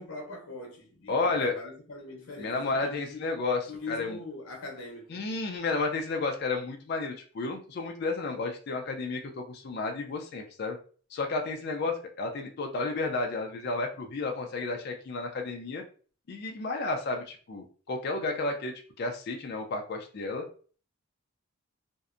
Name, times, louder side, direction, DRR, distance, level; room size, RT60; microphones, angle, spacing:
voice 1, 0.0-3.2 3.7-5.3, left 3 dB, 85° left, 0.8 m, -41 dB
voice 2, 1.1-1.6 2.4-4.2 5.1-10.8 11.1-15.8 16.3-20.5, left 3 dB, 50° left, 0.4 m, -32 dB
2.6 x 2.1 x 2.4 m
head